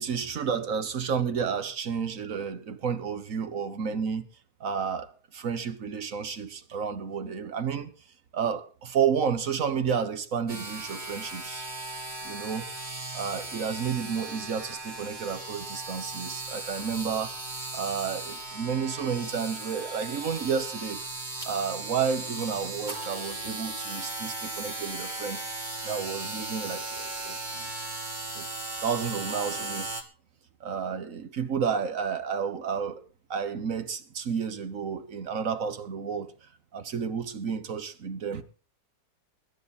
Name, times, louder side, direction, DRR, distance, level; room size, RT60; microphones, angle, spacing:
voice 1, 0.0-4.3 4.6-7.9 8.3-11.7 12.2-12.7 13.1-17.4 17.7-21.0 21.4-25.4 25.8-27.7 28.3-28.5 28.8-29.9 30.6-33.0 33.3-36.3 36.7-38.4, right 6 dB, 55° right, 1.5 m, -31 dB
sound 1, 10.5-30.0, right 2 dB, 25° right, 1.9 m, -37 dB
21.0 x 9.7 x 4.2 m
omnidirectional pair, 1.8 m